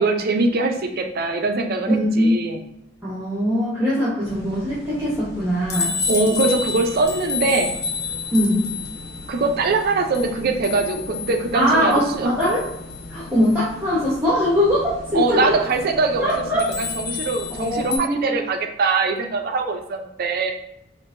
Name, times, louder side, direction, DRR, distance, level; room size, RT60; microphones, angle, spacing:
voice 1, 0.0-2.6 6.1-7.8 9.3-12.3 15.1-20.5, right 3 dB, 55° right, 4 dB, 0.5 m, -22 dB
voice 2, 1.9-2.3 3.0-5.9 8.3-8.6 11.5-12.6 13.1-14.8 15.1-15.5 16.2-16.6 17.6-18.4, equal, 10° right, -9 dB, 0.9 m, -21 dB
sound 1, 4.3-18.0, left 4 dB, 55° left, 0.8 m, -31 dB
4.6 x 2.6 x 2.5 m, 0.83 s
head